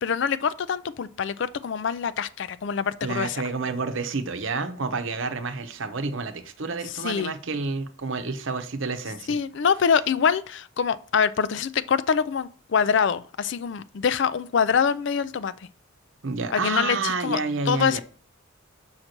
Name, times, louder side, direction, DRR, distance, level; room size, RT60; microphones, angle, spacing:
voice 1, 0.0-3.4 7.0-7.3 9.3-15.5 16.5-17.4 17.7-18.0, left 6 dB, 60° left, 0.4 m, -24 dB
voice 2, 3.0-9.4 16.2-18.0, right 3 dB, 65° right, 0.8 m, -29 dB
6.5 x 5.7 x 4.4 m
head